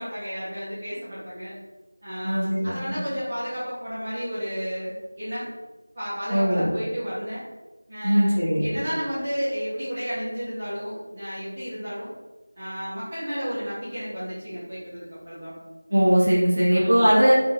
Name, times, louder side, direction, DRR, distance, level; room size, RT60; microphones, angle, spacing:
voice 1, 0.0-1.5 2.0-5.5 5.9-7.4 7.9-12.1 12.6-15.5 16.7-17.0, equal, 25° right, -13 dB, 1.0 m, -32 dB
voice 2, 2.2-3.0 6.3-6.6 8.0-8.6 15.9-17.3, equal, 45° right, -7 dB, 1.3 m, -20 dB
3.7 x 2.1 x 3.3 m, 1.2 s
figure-of-eight pair, 175°, 0 cm